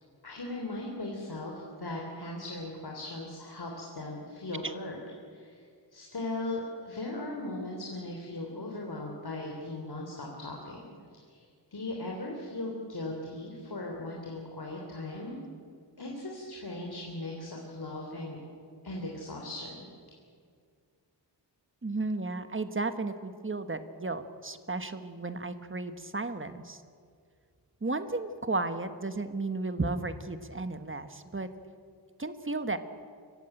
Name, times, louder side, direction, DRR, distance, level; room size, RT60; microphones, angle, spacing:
voice 1, 0.2-1.5 1.8-5.0 5.3-5.6 5.9-11.4 11.7-15.4 16.0-18.4 18.8-19.9, left 2 dB, 60° left, 0 dB, 3.5 m, -38 dB
voice 2, 21.8-26.8 27.8-31.5 32.2-32.8, right 3 dB, 30° right, 10 dB, 1.3 m, -34 dB
25.0 x 15.0 x 9.0 m, 2.2 s
wide cardioid pair, 85°, 43 cm